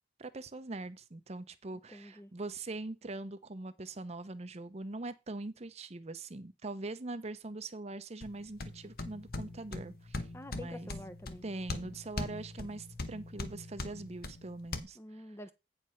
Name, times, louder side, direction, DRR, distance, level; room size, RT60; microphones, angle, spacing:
voice 1, 0.2-10.3 10.5-10.9 11.4-15.0, right 2 dB, 35° right, 0.7 m, -42 dB
voice 2, 1.9-2.3 10.3-11.4 14.9-15.5, left 1 dB, 15° left, 0.6 m, -47 dB
sound 1, 8.2-14.8, left 2 dB, 60° left, 1.0 m, -41 dB
8.9 x 4.8 x 5.6 m
head